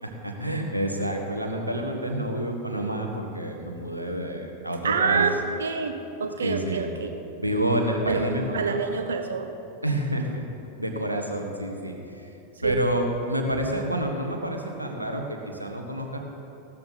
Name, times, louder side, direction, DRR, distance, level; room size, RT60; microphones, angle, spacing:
voice 1, 0.0-5.3 6.4-6.9 7.4-8.8 9.8-10.5 10.8-12.3 12.6-16.2, right 1 dB, 85° right, 3 dB, 1.4 m, -28 dB
voice 2, 4.8-5.3 5.6-7.2 8.0-8.3 8.5-9.5 12.6-12.8, right 5 dB, 65° right, 7 dB, 1.0 m, -27 dB
15.5 x 13.0 x 4.1 m, 2.9 s
figure-of-eight pair, 90°, 0 cm